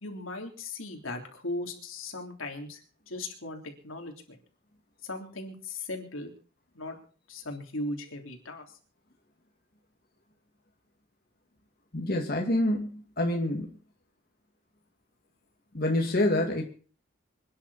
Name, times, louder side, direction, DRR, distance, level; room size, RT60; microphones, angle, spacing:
voice 1, 0.0-2.8 3.1-4.4 5.0-6.3 6.7-7.0 7.3-8.7, left 2 dB, 85° left, 3 dB, 3.4 m, -38 dB
voice 2, 11.9-13.7 15.7-16.6, left 1 dB, 50° left, 1 dB, 2.3 m, -27 dB
26.5 x 10.5 x 4.2 m, 0.41 s
head